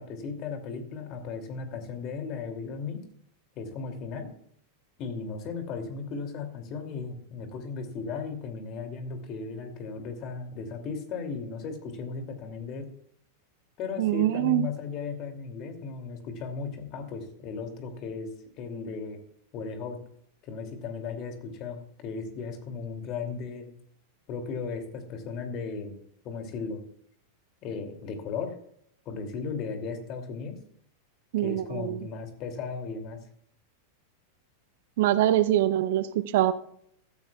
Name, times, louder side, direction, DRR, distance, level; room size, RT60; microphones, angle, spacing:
voice 1, 0.0-3.0 3.6-4.3 5.0-12.9 13.8-19.2 19.5-20.0 20.4-23.7 24.3-26.0 26.2-26.8 27.6-28.5 29.1-30.6 31.4-33.2, left 5 dB, 35° left, 5 dB, 2.6 m, -36 dB
voice 2, 14.0-14.7 31.3-32.0 35.0-36.1 36.3-36.5, right 13 dB, 55° right, 15 dB, 0.6 m, -23 dB
16.0 x 15.0 x 2.3 m, 0.67 s
figure-of-eight pair, 90°, 0 cm